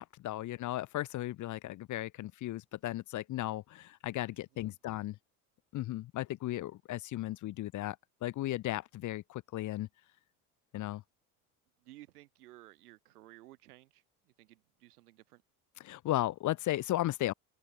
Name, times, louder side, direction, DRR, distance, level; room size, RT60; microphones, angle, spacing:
voice 1, 0.0-5.1 5.7-8.0 8.2-9.9 10.7-11.0 15.8-17.3, left 15 dB, 40° left, 0.7 m, -35 dB
voice 2, 4.3-4.8 11.8-15.4, right 16 dB, 85° right, 4.4 m, -57 dB
open air
hypercardioid pair, 75°, 44 cm